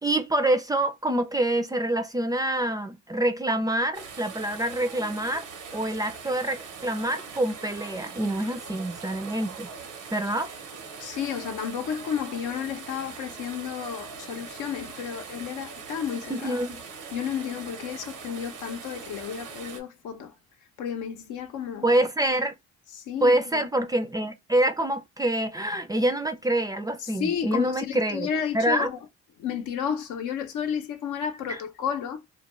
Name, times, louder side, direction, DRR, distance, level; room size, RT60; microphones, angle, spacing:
voice 1, 0.0-5.5 5.7-9.7 10.1-10.5 16.3-16.8 21.8-22.5 23.2-28.3 28.5-28.9 31.5-31.6, right 1 dB, 15° right, 0.3 m, -26 dB
sound 1, 3.9-19.8, right 5 dB, 85° right, 0.8 m, -41 dB
voice 2, 11.0-16.6 17.1-20.3 20.8-21.9 22.9-23.4 27.0-29.0 29.4-32.2, left 8 dB, 85° left, 0.7 m, -32 dB
2.3 x 2.2 x 2.9 m
cardioid pair, 90°, 30 cm